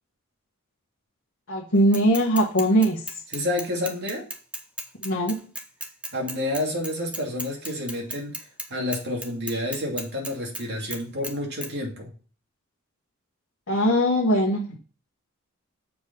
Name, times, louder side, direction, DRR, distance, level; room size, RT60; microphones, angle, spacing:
voice 1, 1.5-3.0 5.0-5.4 13.7-14.6, equal, 60° left, -3 dB, 1.4 m, -20 dB
Bicycle / Mechanisms, 1.9-8.7 8.9-10.6 10.9-11.3 11.6-11.7, right 1 dB, 5° right, 0.8 m, -35 dB
voice 2, 3.3-4.3 6.1-8.3 8.7-12.1 14.7-14.8, left 1 dB, 50° right, -1 dB, 2.5 m, -29 dB
7.1 x 4.5 x 5.3 m, 0.39 s
head